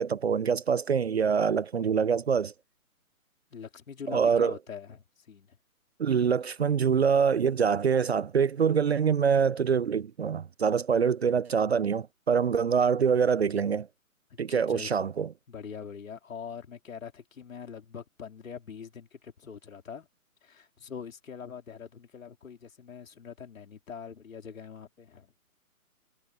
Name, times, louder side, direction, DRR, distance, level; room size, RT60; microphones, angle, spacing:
voice 1, 0.0-2.5 4.1-4.5 6.0-13.9 14.4-15.3, right 6 dB, 50° right, 0.5 m, -25 dB
voice 2, 3.5-5.6 14.3-14.9 15.5-20.1 20.4-25.3, left 7 dB, 65° left, 3.7 m, -43 dB
hypercardioid pair, 160°, 44 cm